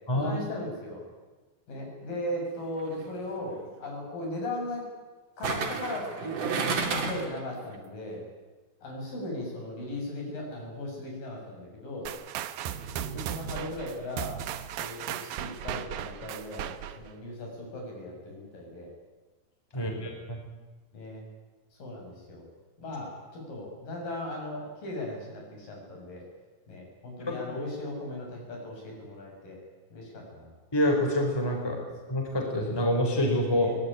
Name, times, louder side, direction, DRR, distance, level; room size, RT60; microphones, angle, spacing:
voice 1, 0.1-1.0 1.7-4.8 5.4-8.2 8.8-12.1 12.6-12.8 13.1-14.4 14.8-18.9 19.7-20.2 20.9-21.2 21.8-22.4 22.8-26.2 26.7-29.6 29.9-30.5 31.8-32.1 33.6-33.7, left 1 dB, 65° left, 0 dB, 8.5 m, -38 dB
sound 1, 2.8-3.1 5.4-7.4 7.7-7.8, right 5 dB, 55° right, 3.9 m, -31 dB
sound 2, 12.1-17.1, right 10 dB, 75° right, 2.7 m, -36 dB
voice 2, 19.7-20.4 27.3-27.7 30.7-31.8 32.1-33.8, left 1 dB, 5° left, 2 dB, 4.0 m, -27 dB
23.0 x 19.0 x 10.0 m, 1.3 s
omnidirectional pair, 4.3 m